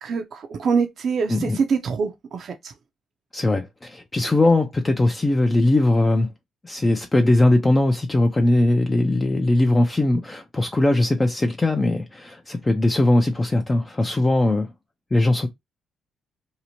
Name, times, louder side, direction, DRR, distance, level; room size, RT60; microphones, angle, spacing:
voice 1, 0.0-2.7, right 5 dB, 55° right, 0.5 m, -25 dB
voice 2, 3.3-6.3 6.6-14.7 15.1-15.5, left 2 dB, 20° left, 0.4 m, -20 dB
2.7 x 2.0 x 2.8 m
cardioid pair, 90°, 0 cm